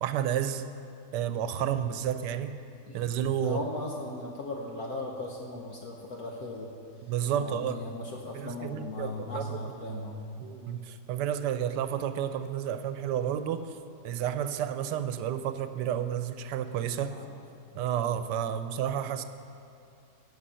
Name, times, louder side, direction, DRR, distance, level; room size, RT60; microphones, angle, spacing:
voice 1, 0.0-0.6 1.1-2.5 2.9-3.6 7.0-7.8 8.3-9.5 10.4-13.7 14.0-17.2 17.7-19.2, right 9 dB, 85° right, 10 dB, 1.2 m, -31 dB
voice 2, 2.9-6.7 7.4-10.3 17.1-17.3, left 2 dB, 65° left, 0 dB, 1.4 m, -38 dB
17.5 x 6.5 x 5.7 m, 2.5 s
omnidirectional pair, 1.8 m